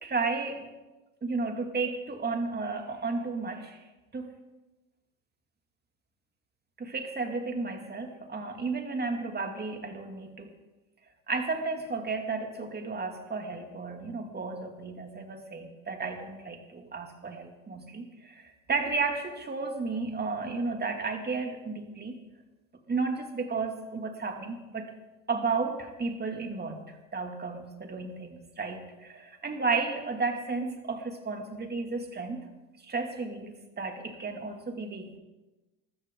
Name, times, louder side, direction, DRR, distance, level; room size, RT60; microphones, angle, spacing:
voice 1, 0.0-0.7 1.2-3.8 4.1-4.3 6.8-10.5 11.3-22.2 22.9-24.9 25.3-32.4 32.8-35.2, right 4 dB, 25° right, 4 dB, 2.6 m, -33 dB
22.0 x 13.0 x 3.9 m, 1.1 s
supercardioid pair, 80°, 36 cm